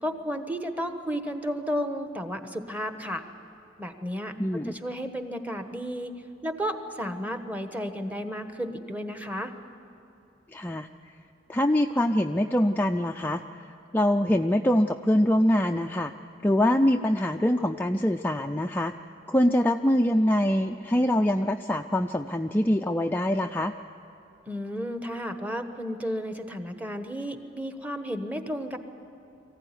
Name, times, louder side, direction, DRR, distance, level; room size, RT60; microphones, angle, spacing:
voice 1, 0.0-3.2 3.8-6.1 6.4-9.5 24.5-28.8, equal, 10° right, 7 dB, 1.1 m, -33 dB
voice 2, 4.4-4.8 10.5-10.9 11.5-13.7 13.9-16.1 16.4-18.9 19.3-23.7, left 1 dB, 10° left, 4 dB, 0.4 m, -24 dB
24.0 x 15.5 x 9.9 m, 2.9 s
head